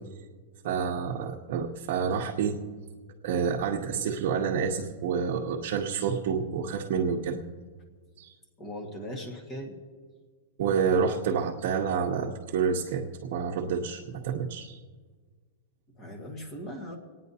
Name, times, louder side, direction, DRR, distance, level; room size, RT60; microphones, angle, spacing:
voice 1, 0.6-2.6 3.2-7.4 8.2-8.3 10.6-14.8, right 6 dB, 60° right, -1 dB, 0.8 m, -28 dB
voice 2, 8.6-9.8 16.0-17.0, equal, 20° left, 2 dB, 1.6 m, -39 dB
28.0 x 9.4 x 2.8 m, 1.5 s
supercardioid pair, 165°, 0 cm